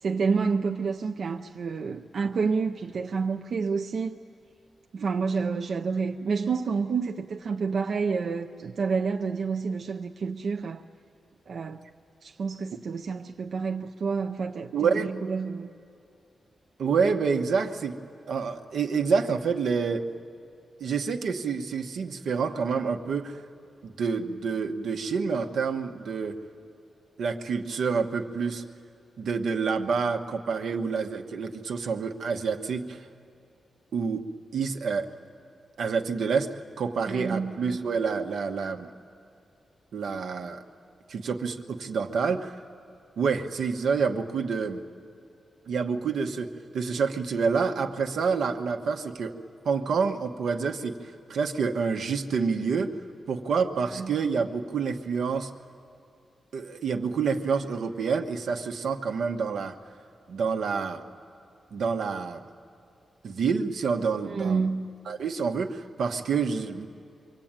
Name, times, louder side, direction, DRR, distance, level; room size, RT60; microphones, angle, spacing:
voice 1, 0.0-4.2 4.9-10.8 11.5-11.8 12.2-15.7 37.1-37.6 53.9-54.1 64.3-64.9, right 5 dB, 55° right, 3 dB, 0.5 m, -29 dB
voice 2, 14.7-15.1 16.8-18.0 18.3-20.1 20.8-23.4 23.8-26.4 27.2-28.6 29.2-33.0 33.9-34.2 34.5-35.1 35.8-38.9 39.9-40.6 41.1-42.5 43.2-44.8 45.7-49.3 49.6-51.0 51.3-52.9 53.3-55.5 56.5-59.7 60.3-61.0 61.7-62.4 63.2-64.7 65.1-66.9, right 5 dB, 80° right, 5 dB, 1.2 m, -28 dB
26.5 x 24.0 x 8.9 m, 2.5 s
wide cardioid pair, 160°, 0 cm